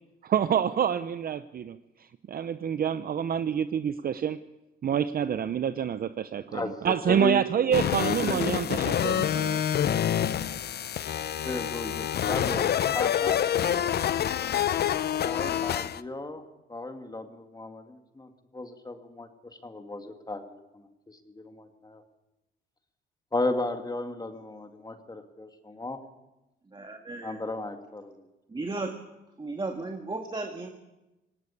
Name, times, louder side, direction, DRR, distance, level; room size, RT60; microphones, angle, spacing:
voice 1, 0.2-1.8 2.3-4.4 4.8-9.6, right 8 dB, 50° right, 12 dB, 0.7 m, -27 dB
voice 2, 6.5-7.4 8.2-8.4 11.4-13.4 15.2-16.4 16.7-22.0 23.3-26.0 27.2-28.3, left 2 dB, 20° left, 6 dB, 2.1 m, -35 dB
sound 1, 7.7-16.0, left 10 dB, 55° left, 0.7 m, -27 dB
voice 3, 26.7-27.4 28.5-28.9 29.4-30.7, right 3 dB, 25° right, 3 dB, 1.9 m, -35 dB
18.5 x 18.0 x 8.5 m, 0.99 s
cardioid pair, 90°, 20 cm